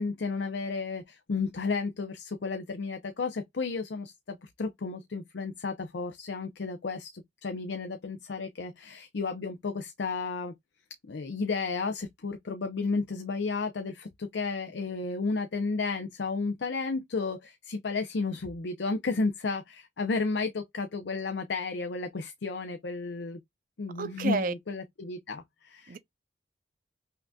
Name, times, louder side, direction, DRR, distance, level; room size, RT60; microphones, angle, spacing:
voice 1, 0.0-10.5 11.1-23.4 23.8-26.0, left 4 dB, 65° left, 0.5 m, -33 dB
voice 2, 24.0-24.5 25.9-26.0, right 4 dB, 45° right, 0.5 m, -30 dB
5.7 x 2.5 x 2.2 m
head